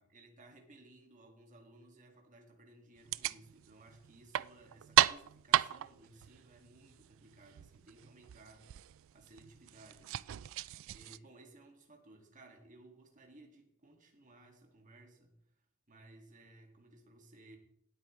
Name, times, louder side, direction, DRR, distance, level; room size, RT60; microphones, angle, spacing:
voice 1, 0.0-10.4 10.9-15.4 15.9-17.6, right 2 dB, 40° right, 2 dB, 2.0 m, -59 dB
sound 1, 3.0-11.2, right 12 dB, 65° right, 0.3 m, -35 dB
18.5 x 8.6 x 3.1 m, 0.72 s
head